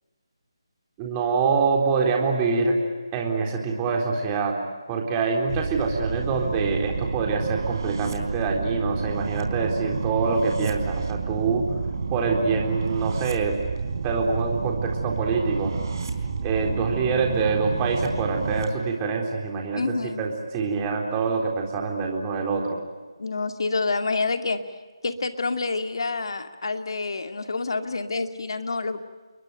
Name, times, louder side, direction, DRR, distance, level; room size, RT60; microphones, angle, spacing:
voice 1, 1.0-2.8 3.1-4.6 4.9-11.7 12.1-13.6 14.0-15.7 16.4-19.8 20.2-22.8, right 4 dB, 15° right, 1 dB, 3.9 m, -25 dB
sound 1, 5.5-18.7, right 4 dB, 45° right, 4.3 m, -30 dB
voice 2, 19.8-20.2 23.2-24.6 25.0-29.0, left 3 dB, 65° left, 7 dB, 2.3 m, -27 dB
29.0 x 22.0 x 9.1 m, 1.4 s
figure-of-eight pair, 165°, 3 cm